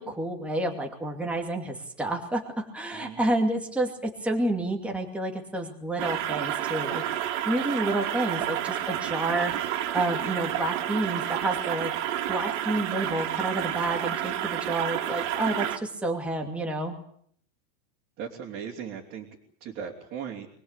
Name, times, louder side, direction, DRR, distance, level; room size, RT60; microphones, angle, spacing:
voice 1, 0.0-11.9 12.3-17.0, right 1 dB, 5° right, 1 dB, 2.6 m, -29 dB
voice 2, 2.9-3.3 18.2-19.3 19.6-20.5, right 7 dB, 25° right, -1 dB, 3.3 m, -37 dB
sound 1, 6.0-15.8, right 11 dB, 45° right, 2.3 m, -30 dB
24.5 x 21.0 x 8.4 m, 0.63 s
supercardioid pair, 175°, 49 cm